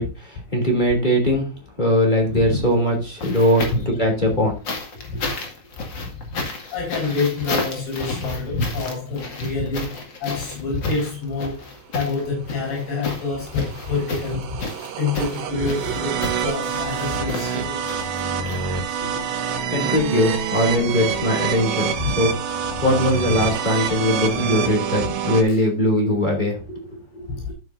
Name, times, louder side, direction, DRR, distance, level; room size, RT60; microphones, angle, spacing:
voice 1, 0.0-3.7 4.0-4.6 19.1-19.2 19.7-22.3 22.8-27.0, left 1 dB, 15° left, 1.6 m, -20 dB
sound 1, 2.2-3.9 4.6-19.2 20.3-20.4, left 3 dB, 40° left, 1.7 m, -32 dB
voice 2, 6.7-9.9 10.2-11.6 11.9-14.6 15.0-17.9 22.0-22.1 25.5-25.6 27.3-27.4, left 4 dB, 75° left, 6.9 m, -26 dB
sound 2, 12.4-25.4, right 7 dB, 80° right, 3.7 m, -27 dB
13.5 x 7.7 x 2.6 m
omnidirectional pair, 5.1 m